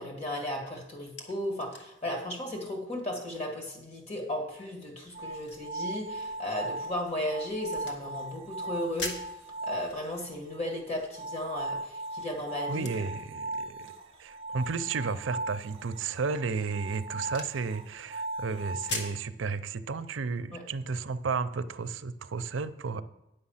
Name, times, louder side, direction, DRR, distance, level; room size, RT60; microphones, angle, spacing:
voice 1, 0.0-9.2 9.6-12.9 20.5-20.6, left 1 dB, 35° left, 1.9 m, -35 dB
sound 1, 0.7-19.3, left 3 dB, 60° left, 1.3 m, -47 dB
sound 2, 5.1-19.1, right 2 dB, 30° right, 0.4 m, -38 dB
voice 2, 12.7-13.9 14.2-23.0, right 4 dB, 85° right, 0.5 m, -33 dB
9.6 x 6.7 x 5.7 m
head